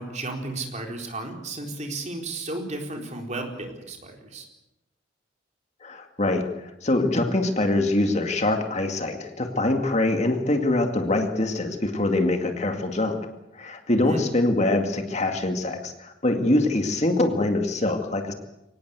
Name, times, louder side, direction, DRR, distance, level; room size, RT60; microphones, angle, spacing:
voice 1, 0.0-4.5 14.0-14.2, right 2 dB, 35° right, 2 dB, 4.3 m, -33 dB
voice 2, 5.8-13.2 13.6-18.3, left 2 dB, 35° left, 5 dB, 2.2 m, -24 dB
24.5 x 19.0 x 8.2 m, 0.92 s
head